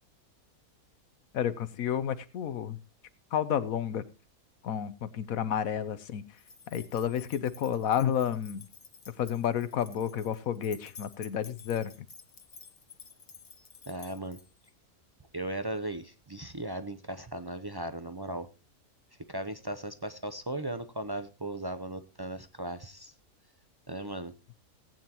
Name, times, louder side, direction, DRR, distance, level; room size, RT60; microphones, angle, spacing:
voice 1, 1.3-2.8 3.3-4.1 4.6-6.3 6.7-8.6 9.2-11.9, left 9 dB, 70° left, 14 dB, 1.2 m, -30 dB
sound 1, 6.4-14.7, left 5 dB, 40° left, 1.2 m, -52 dB
voice 2, 13.9-14.4 15.3-18.5 19.3-23.1 23.9-24.3, right 1 dB, 40° right, 9 dB, 0.3 m, -37 dB
18.5 x 9.1 x 2.9 m, 0.31 s
omnidirectional pair, 1.5 m